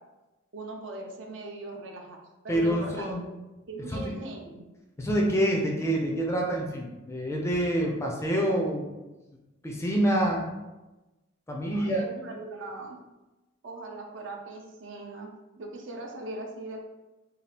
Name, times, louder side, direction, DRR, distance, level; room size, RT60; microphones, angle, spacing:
voice 1, 0.5-2.2 2.4-3.4 3.7-4.7 11.7-13.0 13.6-16.8, right 2 dB, 60° right, 1 dB, 0.5 m, -40 dB
voice 2, 2.5-3.2 3.9-4.1 5.0-8.9 9.6-10.5 11.5-12.0, right 1 dB, 15° left, -1 dB, 0.4 m, -27 dB
2.7 x 2.3 x 3.3 m, 1.1 s
head